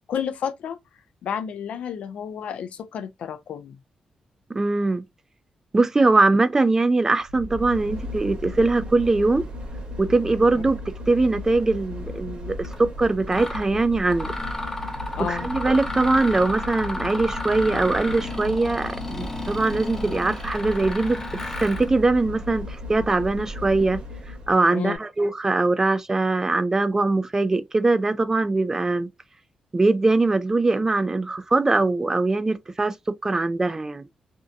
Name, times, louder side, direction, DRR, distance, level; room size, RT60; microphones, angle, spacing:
voice 1, 0.1-0.8 1.2-3.8 15.2-15.5 24.7-25.0, left 8 dB, 80° left, 0.4 m, -31 dB
voice 2, 4.5-5.0 5.7-9.4 10.0-10.8 11.1-14.3 15.3-21.2 21.6-24.0 24.5-29.1 29.7-32.9 33.2-34.0, right 3 dB, 25° right, 0.4 m, -22 dB
sound 1, 7.2-24.6 24.9-25.0, left 2 dB, 50° right, 1.0 m, -36 dB
Mechanisms, 12.6-12.8 13.3-13.7 14.1-21.9, left 2 dB, 20° left, 0.7 m, -33 dB
2.6 x 2.2 x 2.5 m
cardioid pair, 85°, 2 cm